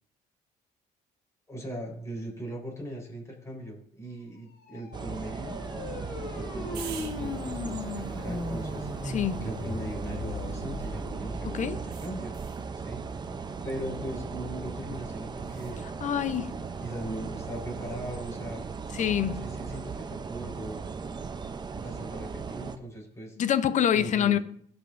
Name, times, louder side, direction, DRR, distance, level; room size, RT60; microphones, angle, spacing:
voice 1, 1.5-5.6 6.3-12.3 12.7-13.0 13.6-15.8 16.4-18.6 19.3-20.9 21.7-23.4 23.9-24.4, right 1 dB, 15° left, 4.0 m, -39 dB
sound 1, 4.4-11.4, left 3 dB, 75° left, 1.9 m, -38 dB
sound 2, 4.9-22.8, right 5 dB, 25° right, 0.6 m, -37 dB
sound 3, 6.7-11.1 11.9-12.7 15.4-15.8, right 9 dB, 75° right, 1.2 m, -49 dB
voice 2, 9.0-9.4 11.4-11.8 16.0-16.5 18.9-19.4 23.4-24.4, left 9 dB, 45° left, 0.6 m, -26 dB
17.5 x 5.8 x 2.6 m
cardioid pair, 110°, 17 cm